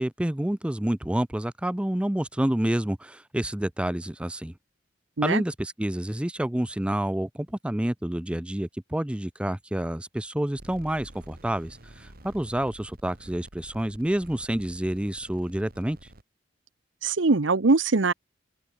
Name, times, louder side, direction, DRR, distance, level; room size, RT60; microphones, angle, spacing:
voice 1, 0.0-4.5 5.2-16.0, right 1 dB, 5° right, 0.4 m, -28 dB
sound 1, 10.6-16.2, right 1 dB, 50° right, 3.0 m, -48 dB
voice 2, 17.0-18.1, right 3 dB, 85° right, 0.9 m, -22 dB
head